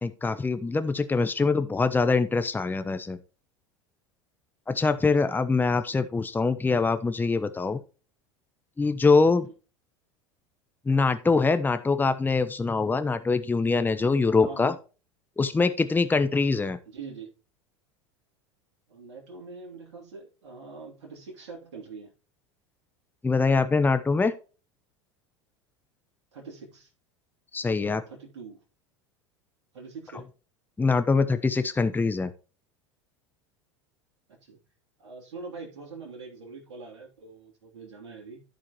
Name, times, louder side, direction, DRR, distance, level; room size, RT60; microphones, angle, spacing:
voice 1, 0.0-3.2 4.7-7.8 8.8-9.5 10.9-14.7 15.4-16.8 23.2-24.3 27.5-28.0 30.8-32.3, left 4 dB, 10° left, 11 dB, 0.9 m, -24 dB
voice 2, 14.4-14.7 16.9-17.3 18.9-22.1 26.3-26.9 27.8-28.6 29.7-30.3 34.3-34.6 35.0-38.4, right 4 dB, 70° right, -2 dB, 3.0 m, -43 dB
14.5 x 5.0 x 3.0 m, 0.34 s
hypercardioid pair, 85°, 15 cm